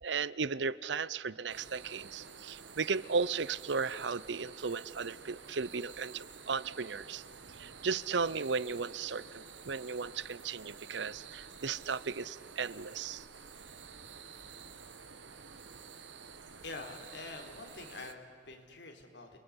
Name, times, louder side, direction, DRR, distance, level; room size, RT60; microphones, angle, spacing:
voice 1, 0.0-7.2 7.6-13.2, right 5 dB, 70° right, 19 dB, 0.7 m, -35 dB
sound 1, 1.5-18.1, right 6 dB, 85° right, 1.7 m, -50 dB
voice 2, 16.6-19.4, left 3 dB, 70° left, 4 dB, 4.1 m, -46 dB
28.5 x 21.0 x 9.8 m, 2.3 s
head